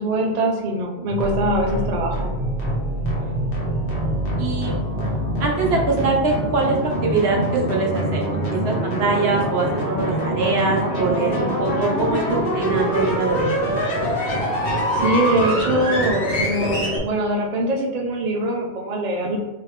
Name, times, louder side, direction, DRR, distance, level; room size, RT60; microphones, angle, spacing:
voice 1, 0.0-2.3 14.9-19.4, right 1 dB, 45° right, 0 dB, 0.7 m, -23 dB
sound 1, 1.1-17.0, right 1 dB, 55° left, 1.2 m, -24 dB
voice 2, 3.0-3.4 4.4-4.8 5.4-13.6, right 3 dB, 70° right, -1 dB, 1.1 m, -23 dB
3.5 x 3.4 x 3.1 m, 1.1 s
omnidirectional pair, 1.1 m